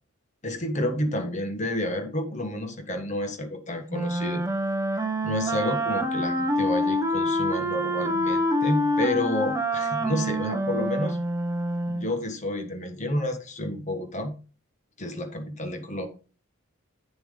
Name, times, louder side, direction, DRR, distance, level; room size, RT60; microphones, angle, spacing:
voice 1, 0.4-4.4 4.9-11.2 11.9-14.3 15.0-16.1, left 1 dB, 35° left, 6 dB, 1.3 m, -30 dB
Wind instrument woodwind instrument, 3.9-12.1, equal, 15° right, 0.9 m, -26 dB
8.7 x 6.9 x 3.8 m, 0.36 s
head